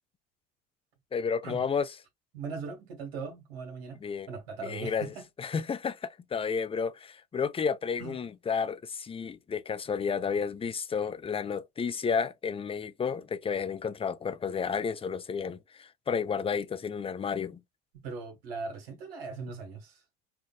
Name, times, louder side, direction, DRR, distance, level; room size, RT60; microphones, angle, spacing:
voice 1, 1.1-1.9 4.0-4.3 4.6-5.1 5.4-17.6, left 6 dB, 20° left, 0.5 m, -31 dB
voice 2, 2.3-4.0 4.3-5.3 8.0-8.2 18.0-20.0, right 4 dB, 85° right, 1.5 m, -39 dB
4.6 x 2.5 x 2.3 m
hypercardioid pair, 75°, 30 cm